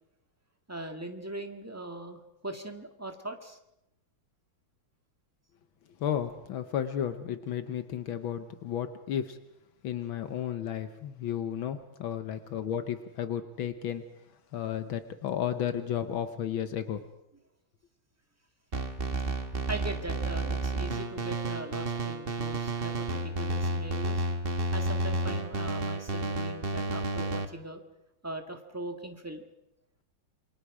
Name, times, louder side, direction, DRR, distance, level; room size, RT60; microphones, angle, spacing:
voice 1, 0.7-3.6 19.7-24.2 24.7-27.8 28.2-29.4, right 1 dB, 10° right, 5 dB, 1.7 m, -40 dB
voice 2, 6.0-9.4 9.8-14.0 14.5-17.0, left 9 dB, 75° left, 10 dB, 1.7 m, -33 dB
sound 1, 18.7-27.4, right 2 dB, 30° right, 1.5 m, -31 dB
27.5 x 23.5 x 5.0 m, 0.85 s
omnidirectional pair, 2.3 m